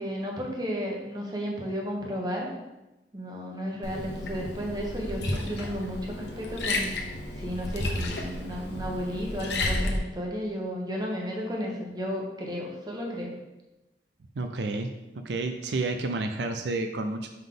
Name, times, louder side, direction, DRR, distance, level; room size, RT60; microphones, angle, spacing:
voice 1, 0.0-2.5 3.1-6.9 7.4-13.3, equal, 25° right, -1 dB, 1.1 m, -33 dB
Liquid, 3.8-10.0, left 2 dB, 75° left, 0.9 m, -32 dB
voice 2, 14.4-14.9 15.2-17.3, right 2 dB, 80° right, 6 dB, 0.5 m, -30 dB
5.7 x 5.4 x 3.8 m, 1.0 s
head